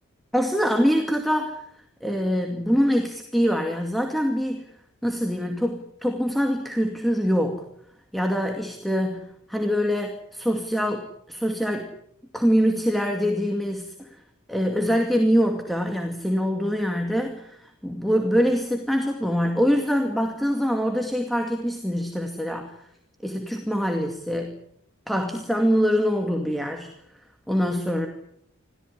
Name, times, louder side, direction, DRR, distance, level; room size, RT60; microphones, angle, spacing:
voice 1, 0.3-1.6 2.0-4.7 5.0-7.6 8.1-11.9 12.3-14.1 14.5-22.7 23.2-24.6 25.1-26.9 27.5-28.1, equal, ahead, 3 dB, 2.3 m, -24 dB
27.5 x 17.0 x 9.9 m, 0.74 s
head